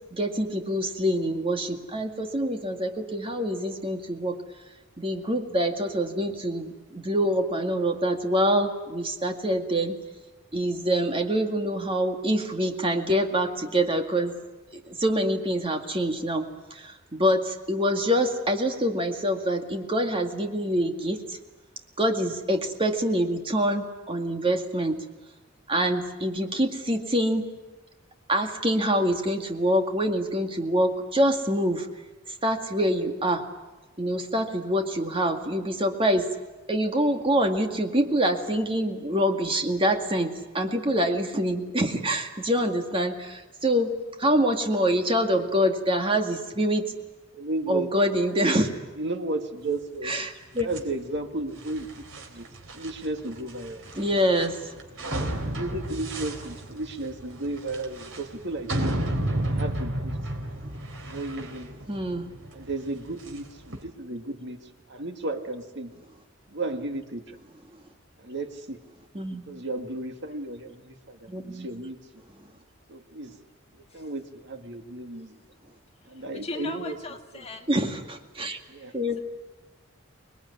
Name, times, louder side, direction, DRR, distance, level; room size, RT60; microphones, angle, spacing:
voice 1, 0.1-4.4 5.0-10.0 10.5-14.4 14.9-21.4 22.0-25.0 25.7-27.5 28.3-31.9 32.4-33.5 34.0-36.3 36.7-43.9 44.2-46.9 47.7-48.7 50.0-50.7 54.0-54.7 61.9-62.3 69.1-69.4 71.3-71.7 77.7-78.6 78.9-79.2, equal, 25° right, 4 dB, 2.1 m, -25 dB
voice 2, 47.3-47.9 49.0-50.1 50.6-51.9 52.3-52.5 52.7-53.8 55.5-58.9 59.5-60.1 61.0-61.7 62.5-64.6 64.9-65.9 66.5-67.2 68.2-68.8 69.5-72.0 72.9-73.3 73.9-75.4 76.1-77.0 77.3-77.5 78.7-78.9, right 2 dB, 60° right, 6 dB, 2.0 m, -34 dB
sound 1, 50.6-63.8, right 1 dB, 85° right, 3.9 m, -33 dB
voice 3, 76.4-77.7, left 3 dB, 30° left, 4 dB, 2.0 m, -36 dB
26.0 x 20.5 x 9.8 m, 1.1 s
head